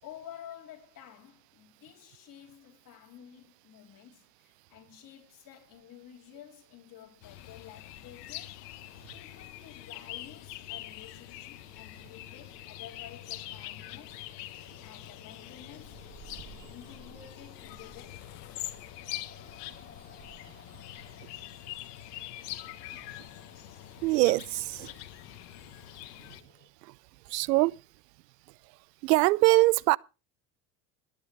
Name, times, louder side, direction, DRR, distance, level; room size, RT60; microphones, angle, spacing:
voice 1, 0.0-8.6 9.1-16.0 16.7-18.9, left 10 dB, 45° left, 4.0 m, -51 dB
sound 1, 7.2-26.4, left 15 dB, 70° left, 1.4 m, -44 dB
sound 2, 8.7-26.7, left 6 dB, 25° left, 4.5 m, -58 dB
sound 3, 15.7-21.2, right 6 dB, 25° right, 3.3 m, -56 dB
voice 2, 16.3-16.7 24.0-24.9 26.8-26.9 27.3-27.8 29.0-30.0, right 21 dB, 80° right, 0.6 m, -24 dB
21.5 x 9.2 x 3.4 m
hypercardioid pair, 75°, 48 cm